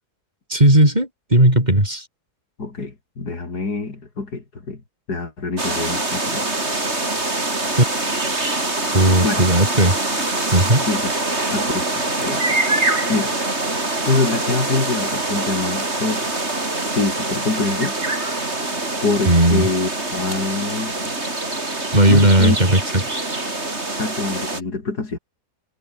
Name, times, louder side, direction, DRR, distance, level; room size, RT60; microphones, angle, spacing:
voice 1, 0.5-2.1 7.8-7.9 8.9-10.0 10.5-10.9 19.2-19.7 21.9-22.8 23.1-23.2, right 1 dB, 25° right, 6.3 m, -15 dB
voice 2, 2.6-4.8 5.1-6.5 9.2-9.4 10.9-11.1 11.5-12.4 13.1-13.3 14.1-16.3 16.9-18.0 19.0-20.9 22.1-22.6 23.9-25.2, left 3 dB, 75° left, 4.2 m, -25 dB
sound 1, 5.6-24.6, right 2 dB, 40° right, 4.7 m, -24 dB
omnidirectional pair, 1.7 m